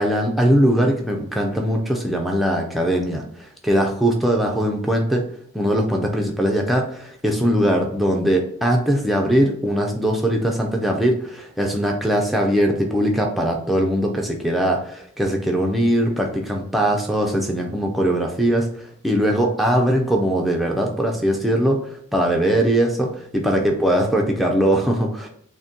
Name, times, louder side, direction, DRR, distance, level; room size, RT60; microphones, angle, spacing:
voice 1, 0.0-5.2 5.5-25.3, equal, ahead, 0 dB, 0.4 m, -21 dB
6.1 x 2.2 x 2.7 m, 0.67 s
head